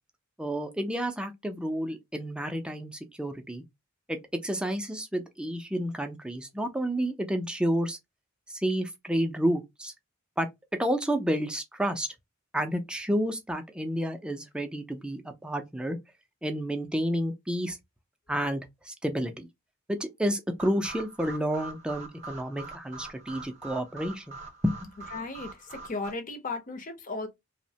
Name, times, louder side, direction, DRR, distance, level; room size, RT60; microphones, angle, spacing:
voice 1, 0.4-3.6 4.1-8.0 8.5-9.9 10.4-12.1 12.5-16.0 16.4-17.8 18.3-19.5 19.9-24.4 24.6-24.9, equal, 5° right, 0.4 m, -30 dB
sound 1, 20.6-26.1, right 3 dB, 35° right, 0.7 m, -44 dB
voice 2, 25.1-27.3, left 3 dB, 40° left, 0.6 m, -35 dB
2.9 x 2.0 x 2.7 m
head